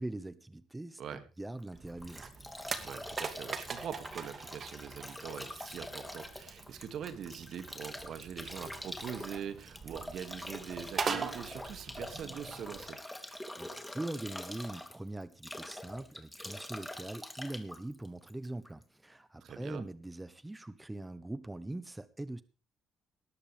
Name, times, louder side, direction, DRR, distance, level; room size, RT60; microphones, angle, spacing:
voice 1, 0.0-2.3 13.6-22.4, right 2 dB, 15° right, 14 dB, 1.1 m, -42 dB
Bathtub (filling or washing) / Drip / Trickle dribble, 1.6-18.8, left 1 dB, 5° left, 3.0 m, -45 dB
sound 1, 1.7-12.9, right 5 dB, 45° right, 2.5 m, -42 dB
voice 2, 2.8-13.0 19.4-19.8, right 8 dB, 65° right, 9 dB, 2.3 m, -43 dB
19.5 x 13.0 x 3.5 m, 0.35 s
supercardioid pair, 75°, 0 cm